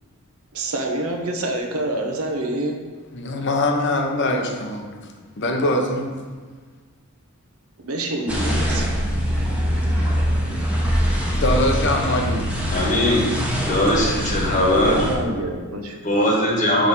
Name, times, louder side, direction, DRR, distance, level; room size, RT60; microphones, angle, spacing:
voice 1, 0.5-2.8 7.8-8.9 14.2-14.6 14.9-16.0, right 1 dB, 85° right, 3 dB, 0.9 m, -27 dB
voice 2, 3.1-4.9 5.4-6.2 11.4-12.5, left 1 dB, 55° left, 3 dB, 0.7 m, -22 dB
sound 1, 8.3-15.1, equal, 5° right, 0.9 m, -23 dB
voice 3, 12.7-15.0 16.0-16.9, left 1 dB, 35° left, -2 dB, 1.2 m, -20 dB
6.2 x 3.3 x 5.3 m, 1.5 s
head